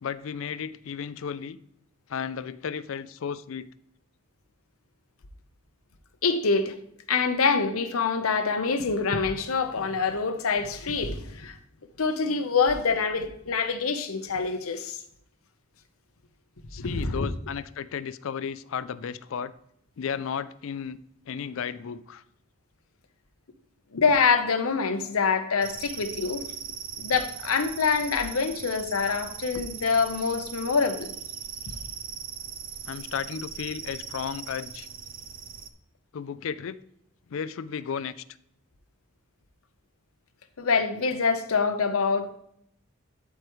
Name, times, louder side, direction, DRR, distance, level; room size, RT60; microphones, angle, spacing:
voice 1, 0.0-1.6 2.1-3.7 16.7-19.5 20.0-21.0 21.3-22.2 32.9-34.9 36.1-36.8 37.3-38.2, left 7 dB, 70° left, 0.4 m, -34 dB
voice 2, 6.2-6.7 7.1-11.6 12.0-15.0 16.8-17.3 23.9-26.4 27.0-31.1 40.6-42.3, left 5 dB, 85° left, 0.9 m, -25 dB
sound 1, 25.6-35.7, right 8 dB, 40° right, 0.5 m, -39 dB
12.5 x 4.7 x 3.1 m
head